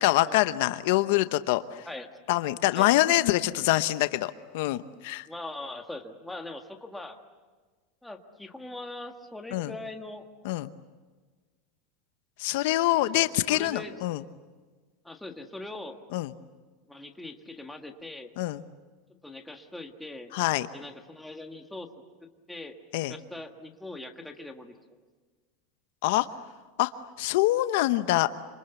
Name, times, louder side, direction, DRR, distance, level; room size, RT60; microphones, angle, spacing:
voice 1, 0.0-1.9 2.3-5.3 9.5-9.7 10.4-10.7 12.4-14.2 16.1-16.3 18.4-18.6 20.3-20.7 22.9-23.1 26.0-26.3 26.8-26.9 27.2-28.3, left 17 dB, 60° left, 12 dB, 0.9 m, -25 dB
voice 2, 5.3-7.2 8.0-10.3 12.9-13.9 15.0-16.0 16.9-18.3 19.2-20.3 20.7-21.9 22.2-22.8 23.1-25.0, left 2 dB, 5° left, 4 dB, 1.6 m, -41 dB
27.0 x 26.5 x 8.2 m, 1.4 s
supercardioid pair, 170°, 0 cm